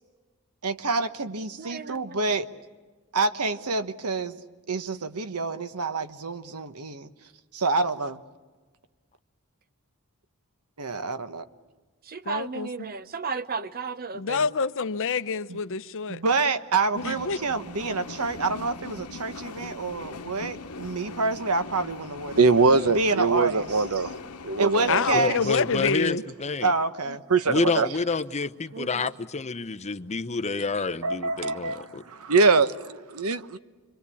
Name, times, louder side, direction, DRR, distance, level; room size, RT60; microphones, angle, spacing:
voice 1, 0.6-2.5 3.1-4.4 4.7-7.1 7.5-8.2 10.8-11.4 15.5-15.6 16.1-22.6 22.9-23.8 24.6-25.4 26.6-27.2, right 3 dB, 90° right, 1.2 m, -27 dB
voice 2, 1.6-2.2 12.0-14.5 28.7-29.0, right 5 dB, 45° right, 0.9 m, -34 dB
voice 3, 12.3-12.7 14.1-16.2 17.0-17.4 24.9-26.2, left 5 dB, 60° left, 0.8 m, -27 dB
sound 1, 17.0-25.9, left 4 dB, 80° left, 1.1 m, -41 dB
voice 4, 22.4-24.1 24.4-25.1 27.3-27.9 31.0-33.6, right 4 dB, 70° right, 1.0 m, -22 dB
voice 5, 25.1-26.7 27.5-32.0, left 4 dB, 30° left, 0.8 m, -28 dB
27.0 x 24.0 x 8.5 m
head